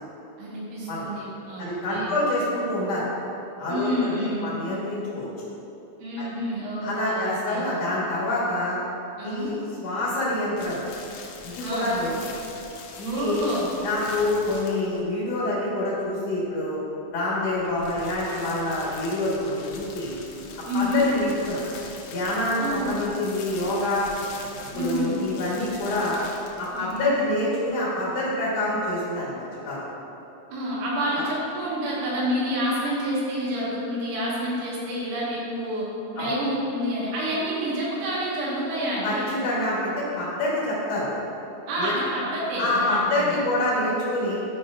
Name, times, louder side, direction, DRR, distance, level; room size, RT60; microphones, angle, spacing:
voice 1, 0.4-2.1 3.7-4.5 6.0-7.6 9.2-9.5 11.6-12.0 13.0-13.7 20.7-21.1 22.6-23.0 24.7-25.2 26.7-27.1 30.5-35.8 36.1-39.3 41.7-43.3, equal, 85° right, -6 dB, 3.8 m, -28 dB
voice 2, 1.6-3.0 3.6-5.3 6.2-6.3 6.8-8.8 9.2-10.8 11.4-12.1 13.0-13.5 13.8-16.8 17.1-20.2 20.7-21.6 22.1-24.0 24.7-26.2 26.6-29.8 31.2-31.3 36.2-36.3 39.0-41.2 41.8-41.9 42.6-44.4, left 1 dB, 70° left, -7 dB, 1.6 m, -26 dB
sound 1, 10.6-15.1 17.5-27.1, left 4 dB, 85° left, 3.1 m, -42 dB
12.0 x 4.8 x 2.4 m, 2.9 s
omnidirectional pair, 5.2 m